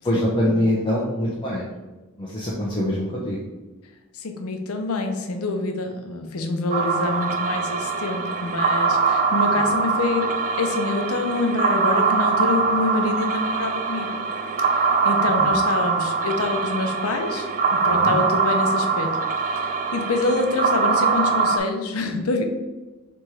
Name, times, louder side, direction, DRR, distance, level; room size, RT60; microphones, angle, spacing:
voice 1, 0.0-1.7 2.2-3.4 15.4-15.5 18.0-18.2, equal, 20° left, -5 dB, 0.6 m, -24 dB
voice 2, 4.1-14.1 14.6-22.4, left 3 dB, 80° left, 5 dB, 0.7 m, -26 dB
sound 1, 6.7-21.6, right 4 dB, 35° right, 0.4 m, -23 dB
3.4 x 3.0 x 4.6 m, 1.2 s
head